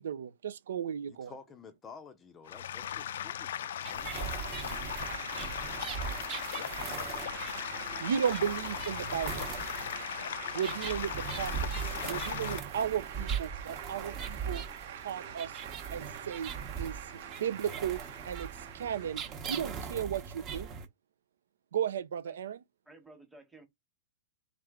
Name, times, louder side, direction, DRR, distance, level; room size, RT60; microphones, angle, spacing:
voice 1, 0.0-1.3 8.0-9.4 10.5-14.6 15.0-15.5 15.9-16.5 16.8-17.0 17.4-18.0 18.2-18.5 18.7-20.7 21.7-22.6, right 8 dB, 85° right, 0.4 m, -34 dB
voice 2, 1.1-4.1, left 5 dB, 15° left, 0.5 m, -51 dB
sound 1, 2.5-12.6, left 10 dB, 75° left, 0.3 m, -38 dB
sound 2, 3.6-19.6, right 9 dB, 60° right, 0.9 m, -46 dB
sound 3, 3.8-20.8, right 7 dB, 25° right, 0.8 m, -40 dB
voice 3, 22.8-23.7, right 2 dB, ahead, 1.0 m, -54 dB
3.6 x 3.2 x 3.6 m
supercardioid pair, 165°, 0 cm